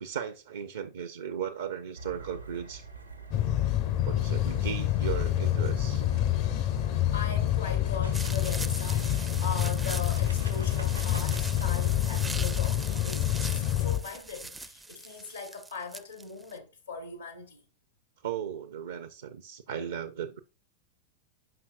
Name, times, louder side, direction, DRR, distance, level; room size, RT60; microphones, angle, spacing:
voice 1, 0.0-2.9 4.0-6.0 18.2-20.4, right 8 dB, 65° right, 0.5 m, -36 dB
sound 1, 1.9-13.6, right 4 dB, 85° right, 1.1 m, -45 dB
sound 2, 3.3-14.0, left 12 dB, 45° left, 0.5 m, -27 dB
voice 2, 7.1-17.6, left 4 dB, 80° left, 1.1 m, -40 dB
sound 3, 8.1-16.5, right 2 dB, 10° right, 0.4 m, -41 dB
7.7 x 5.5 x 2.4 m
figure-of-eight pair, 90°, 0 cm